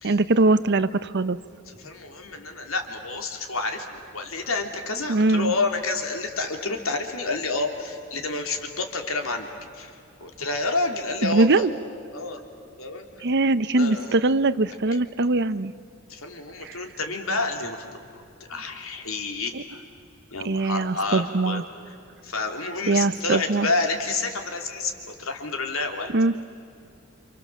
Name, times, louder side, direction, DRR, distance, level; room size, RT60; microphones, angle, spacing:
voice 1, 0.0-1.4 5.1-5.5 11.2-11.7 13.2-15.7 16.6-16.8 19.5-19.6 20.4-21.6 22.9-23.7 26.1-26.3, right 2 dB, 50° right, 15 dB, 0.8 m, -21 dB
voice 2, 1.7-9.5 9.7-9.9 10.2-11.6 12.1-12.4 12.8-13.1 13.7-14.3 16.1-18.0 18.5-19.8 20.3-21.9 22.2-26.1, left 3 dB, 70° left, 4 dB, 3.2 m, -29 dB
28.5 x 27.5 x 7.5 m, 2.6 s
head